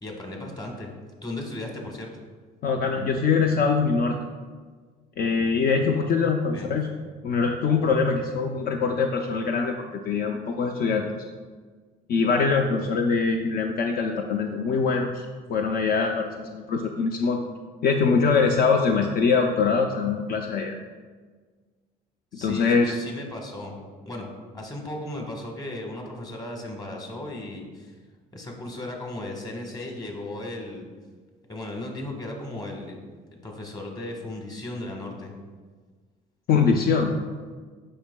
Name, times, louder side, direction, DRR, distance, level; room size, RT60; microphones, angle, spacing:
voice 1, 0.0-0.9 1.2-2.1 6.5-6.8 22.3-23.8 24.0-24.3 24.5-27.9 28.3-30.9 31.5-33.0 33.3-35.3, left 1 dB, 25° left, 1 dB, 1.3 m, -36 dB
voice 2, 2.6-4.2 5.2-6.9 7.2-11.0 12.1-15.2 15.5-17.4 17.8-20.8 22.4-22.9 36.5-37.2, left 5 dB, 60° left, 3 dB, 0.5 m, -23 dB
8.6 x 5.4 x 2.2 m, 1.5 s
cardioid pair, 110°, 17 cm